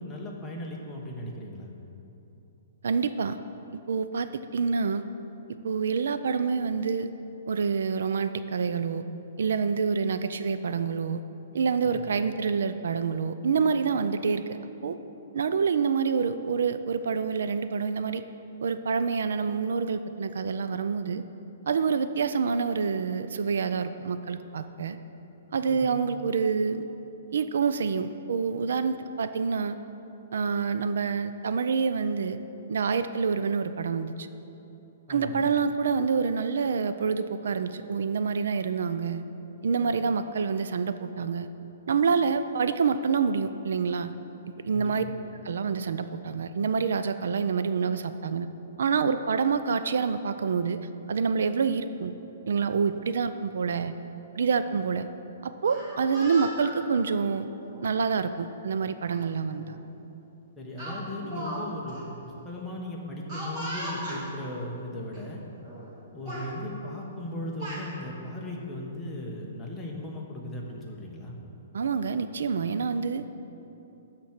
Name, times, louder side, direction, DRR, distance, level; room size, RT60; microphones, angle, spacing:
voice 1, 0.0-1.7 11.9-12.0 25.7-26.0 35.1-35.4 44.7-45.1 60.6-62.0 62.2-65.4 66.1-71.4, left 1 dB, 5° left, -3 dB, 1.0 m, -37 dB
voice 2, 2.8-3.4 3.9-5.1 5.5-7.1 7.5-9.0 9.4-11.2 11.5-15.0 15.3-18.2 18.6-21.2 21.7-25.0 25.5-26.9 27.3-29.8 30.3-32.4 32.7-34.3 35.1-39.3 39.6-41.5 41.9-44.1 44.6-45.0 45.4-48.5 48.8-52.1 52.5-54.0 54.4-55.1 55.4-57.5 57.8-59.8 71.7-73.2, right 5 dB, 70° right, 11 dB, 0.4 m, -27 dB
Speech, 55.5-56.7 57.6-57.9 59.1-59.2 59.6-59.8 60.8-61.6 61.9-62.0 63.3-64.2 65.1-65.2 65.6-65.9 66.2-66.5 67.3-67.8, equal, 20° right, 2.1 m, -37 dB
12.5 x 4.4 x 7.3 m, 3.0 s
hypercardioid pair, 175°, 0 cm